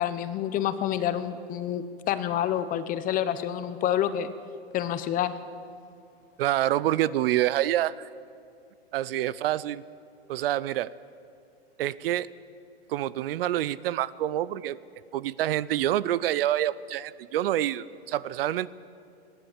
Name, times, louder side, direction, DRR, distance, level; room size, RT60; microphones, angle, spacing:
voice 1, 0.0-4.3 4.7-5.3, left 10 dB, 25° left, 12 dB, 0.9 m, -28 dB
voice 2, 6.4-8.1 8.9-9.8 10.3-10.9 11.8-12.3 12.9-14.8 15.1-18.7, right 13 dB, 60° right, 19 dB, 0.6 m, -27 dB
21.0 x 17.0 x 7.3 m, 2.5 s
hypercardioid pair, 140°, 32 cm